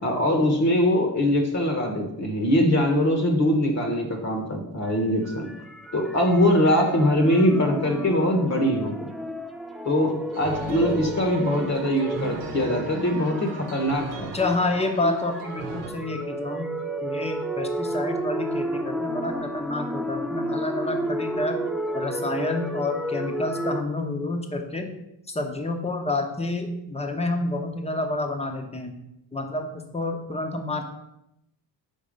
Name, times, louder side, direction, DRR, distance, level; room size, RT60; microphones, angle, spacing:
voice 1, 0.0-5.5 5.9-9.1 9.8-14.3, left 1 dB, 40° left, 3 dB, 1.1 m, -22 dB
sound 1, 4.9-23.8, right 1 dB, ahead, 0.3 m, -32 dB
sound 2, 10.3-15.9, right 4 dB, 85° right, 0.9 m, -37 dB
voice 2, 14.3-16.7 17.0-21.6 21.9-24.9 25.3-29.0 29.3-30.9, left 2 dB, 15° left, 4 dB, 0.9 m, -29 dB
5.6 x 4.0 x 5.2 m, 0.86 s
cardioid pair, 110°, 41 cm